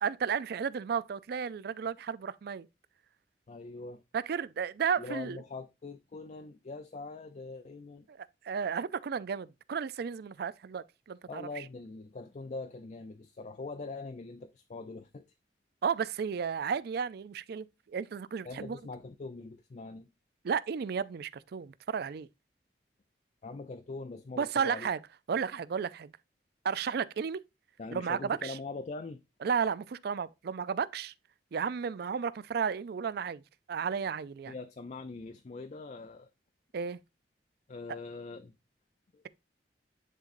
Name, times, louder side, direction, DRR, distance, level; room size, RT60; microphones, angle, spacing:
voice 1, 0.0-2.7 4.1-5.4 8.1-11.6 15.8-18.8 20.4-22.3 24.4-25.0 25.3-26.1 26.6-27.4 27.9-28.6 29.4-31.1 31.5-33.4 33.7-34.5 36.7-37.0, right 6 dB, 60° right, 0.4 m, -33 dB
voice 2, 3.5-4.0 5.0-8.1 11.3-15.2 18.4-20.1 23.4-24.9 27.8-29.2 34.5-36.3 37.7-38.5 39.1-39.3, left 3 dB, 40° left, 0.4 m, -42 dB
10.0 x 3.8 x 2.5 m
head